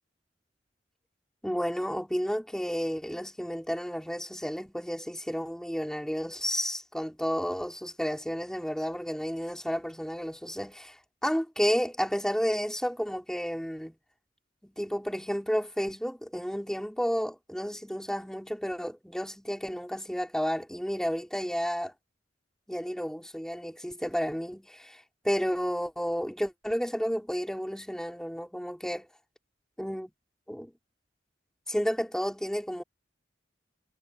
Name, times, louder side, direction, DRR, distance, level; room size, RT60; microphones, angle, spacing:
voice 1, 1.4-11.0 11.2-14.0 14.6-21.9 22.7-29.1 29.8-30.1 30.5-30.7 31.7-32.8, equal, 5° left, 4.3 m, -31 dB
head